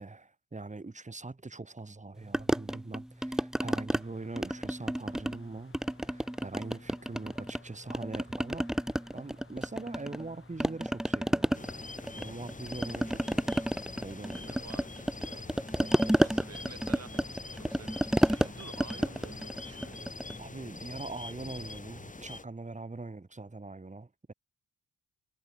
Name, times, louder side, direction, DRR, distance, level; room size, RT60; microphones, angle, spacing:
voice 1, 0.0-8.7 9.1-14.6 15.8-16.3 20.4-24.3, right 3 dB, 25° right, 3.4 m, -43 dB
sound 1, 2.3-4.0 4.4-5.4 5.7-7.6 7.9-10.3 10.6-20.4, equal, ahead, 0.3 m, -31 dB
sound 2, 4.0-20.0, left 5 dB, 45° left, 7.9 m, -59 dB
sound 3, 11.5-22.4, left 3 dB, 25° left, 2.8 m, -44 dB
voice 2, 14.3-15.5 16.2-20.3, right 6 dB, 55° right, 3.0 m, -51 dB
cardioid pair, 70°, 30 cm